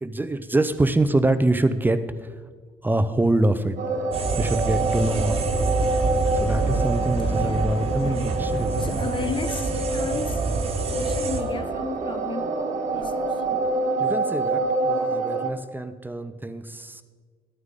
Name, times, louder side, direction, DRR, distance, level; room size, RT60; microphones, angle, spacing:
voice 1, 0.0-2.3 2.8-3.8 4.4-5.5 6.3-9.0 14.0-17.0, right 2 dB, 15° right, 0.7 m, -25 dB
sound 1, 3.8-15.5, right 3 dB, 65° right, 1.0 m, -27 dB
sound 2, 4.1-11.4, right 2 dB, 45° right, 1.4 m, -27 dB
voice 2, 8.0-10.5 10.9-13.4 15.2-15.3, left 6 dB, 40° left, 0.5 m, -35 dB
12.5 x 9.4 x 3.8 m
supercardioid pair, 60°, 13 cm